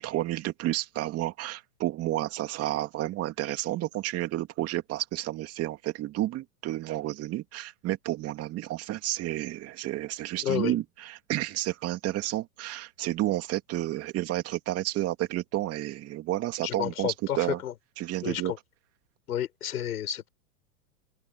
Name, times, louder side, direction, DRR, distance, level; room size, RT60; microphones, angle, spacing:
voice 1, 0.0-17.6 18.0-18.5, right 15 dB, 30° right, 2.5 m, -31 dB
voice 2, 10.4-10.7 16.6-17.7 18.2-18.6 19.3-20.3, left 10 dB, 75° left, 6.9 m, -31 dB
open air
hypercardioid pair, 125°, 45 cm